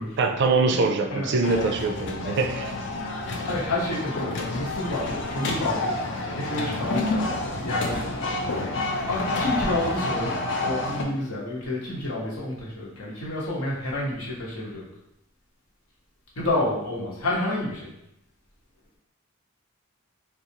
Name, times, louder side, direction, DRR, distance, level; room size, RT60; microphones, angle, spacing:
voice 1, 0.2-2.7, right 3 dB, 55° right, 5 dB, 0.4 m, -23 dB
sound 1, 1.4-11.0, left 2 dB, 60° left, 0.5 m, -29 dB
voice 2, 3.3-6.0 6.3-8.0 9.1-14.9 16.4-17.9, left 1 dB, 80° left, -4 dB, 1.1 m, -29 dB
3.7 x 2.4 x 2.9 m, 0.80 s
head